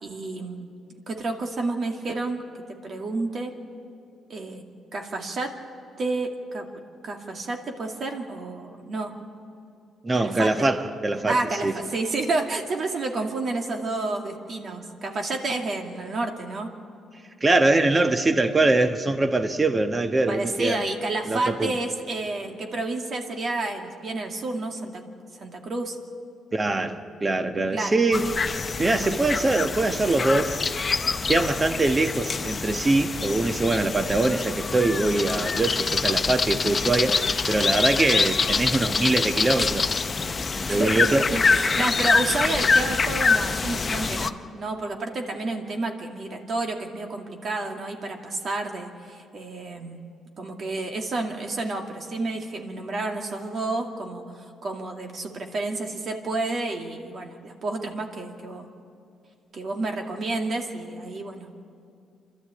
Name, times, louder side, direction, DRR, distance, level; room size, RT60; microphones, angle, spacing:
voice 1, 0.0-0.7 1.1-3.5 4.3-4.6 4.9-5.5 6.0-6.7 7.0-9.1 10.2-10.7 11.3-16.7 20.3-25.0 25.4-26.0 27.7-28.0 40.7-50.0 50.4-58.7 59.5-61.5, right 2 dB, 50° right, 2 dB, 2.3 m, -30 dB
voice 2, 10.0-11.7 17.4-20.8 21.2-21.7 26.5-28.3 28.8-30.6 31.3-37.2 37.5-39.9 40.2-41.2, right 2 dB, 25° right, 7 dB, 1.3 m, -23 dB
sound 1, 28.1-44.3, left 4 dB, 35° left, 0.8 m, -25 dB
27.5 x 12.5 x 8.7 m, 2.4 s
cardioid pair, 90°, 0 cm